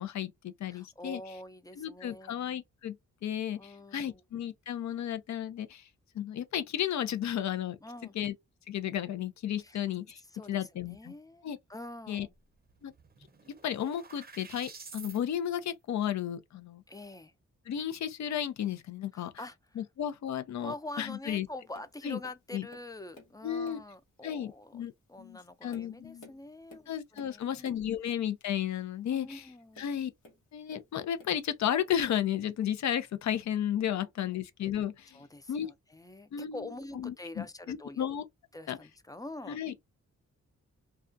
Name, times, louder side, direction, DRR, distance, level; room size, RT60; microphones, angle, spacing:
voice 1, 0.0-1.2 1.8-2.9 3.2-5.8 6.1-7.8 8.1-8.3 8.7-10.2 10.5-11.1 11.4-11.6 12.1-12.3 12.8-12.9 13.6-16.8 17.7-19.3 19.8-21.5 22.0-22.2 22.5-22.6 23.4-23.8 24.2-24.9 25.2-26.3 26.9-29.4 29.8-30.1 30.5-35.2 35.5-35.7 36.3-36.6 36.9-38.2 38.7-38.8 39.5-39.7, left 10 dB, 65° left, 0.5 m, -33 dB
voice 2, 0.7-2.4 3.6-4.2 7.8-8.1 9.6-9.8 10.2-12.3 16.9-17.3 19.1-19.8 20.6-28.0 29.1-29.9 33.9-34.4 35.1-38.0 38.5-39.6, left 1 dB, 15° left, 0.3 m, -46 dB
sound 1, 12.3-12.4 12.7-15.2, right 4 dB, 30° right, 0.6 m, -50 dB
Tap, 21.7-22.0 22.2-23.4 23.6-24.0 24.6-24.8 25.4-27.9 29.7-30.9 31.2-31.9 32.6-32.7, left 2 dB, 90° left, 1.0 m, -55 dB
2.3 x 2.2 x 2.5 m
cardioid pair, 85°, 30 cm